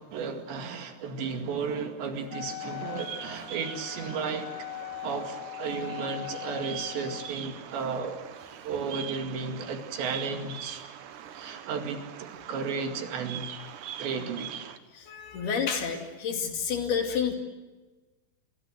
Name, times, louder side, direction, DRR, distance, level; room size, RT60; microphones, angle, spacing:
voice 1, 0.0-4.7 5.0-8.2 8.6-10.8 11.3-13.5 14.0-14.7, right 5 dB, 65° right, 5 dB, 4.2 m, -34 dB
Wind instrument woodwind instrument, 2.3-7.3, left 17 dB, 75° left, 2.9 m, -40 dB
Bird vocalization bird call bird song, 2.6-14.8, right 10 dB, 80° right, 1.8 m, -43 dB
voice 2, 14.9-17.3, left 7 dB, 55° left, 4 dB, 4.1 m, -29 dB
28.5 x 24.0 x 7.9 m, 1.2 s
omnidirectional pair, 5.7 m